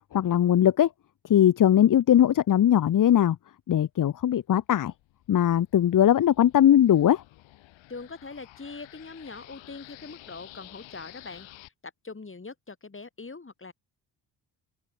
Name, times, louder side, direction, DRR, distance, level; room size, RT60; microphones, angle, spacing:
voice 1, 0.1-0.9 1.2-3.4 3.7-4.9 5.3-7.2, left 10 dB, 45° left, 0.9 m, -20 dB
sound 1, 4.6-11.7, left 17 dB, 75° left, 5.8 m, -51 dB
voice 2, 7.9-13.7, left 4 dB, 25° left, 6.5 m, -42 dB
open air
supercardioid pair, 55°, 46 cm